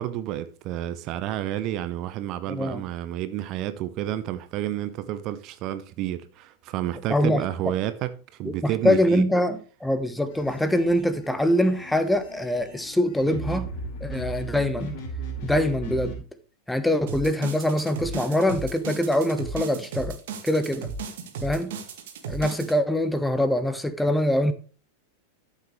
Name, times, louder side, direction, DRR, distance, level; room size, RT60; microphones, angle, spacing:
voice 1, 0.0-9.2, right 12 dB, 40° right, 0.8 m, -30 dB
voice 2, 2.5-2.8 7.1-7.4 8.4-13.7 14.0-14.9 15.4-16.1 16.7-20.2 20.4-20.9 21.4-21.7 22.3-24.5, left 1 dB, 5° left, 1.1 m, -24 dB
sound 1, 10.3-16.2, right 2 dB, 50° left, 5.0 m, -36 dB
sound 2, 17.1-22.7, right 4 dB, 55° right, 2.1 m, -35 dB
13.0 x 7.4 x 3.2 m
figure-of-eight pair, 90°, 0 cm